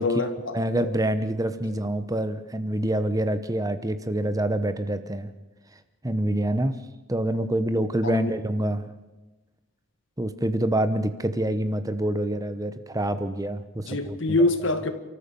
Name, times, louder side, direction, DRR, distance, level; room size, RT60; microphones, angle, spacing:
voice 1, 0.0-0.9 8.0-8.3 13.9-14.9, left 2 dB, 55° left, 1.9 m, -25 dB
voice 2, 0.5-5.3 6.0-6.8 7.1-8.9 10.2-14.2, right 1 dB, 15° right, 0.8 m, -26 dB
29.5 x 14.0 x 6.9 m
head